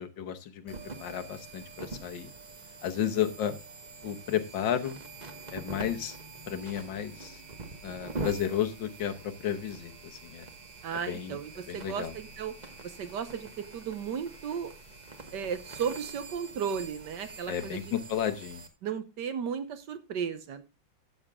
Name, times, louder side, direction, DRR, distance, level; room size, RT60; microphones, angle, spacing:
voice 1, 0.0-2.3 2.8-3.6 4.0-5.0 5.5-6.2 6.5-7.4 7.8-10.5 11.1-11.4 11.7-12.1 17.5-18.6, left 9 dB, 70° left, 8 dB, 1.7 m, -33 dB
sound 1, 0.7-18.7, right 3 dB, 25° right, 1.1 m, -44 dB
voice 2, 10.8-12.5 12.8-14.7 15.3-17.8 18.8-20.6, right 7 dB, 65° right, 11 dB, 1.5 m, -35 dB
12.5 x 7.9 x 3.5 m, 0.26 s
omnidirectional pair, 2.1 m